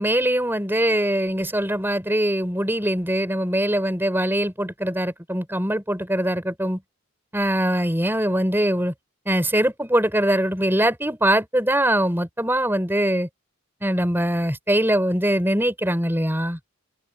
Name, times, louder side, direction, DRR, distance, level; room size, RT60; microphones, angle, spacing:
voice 1, 0.0-6.8 7.3-8.9 9.3-13.3 13.8-16.6, right 1 dB, 10° right, 5.7 m, -22 dB
open air
head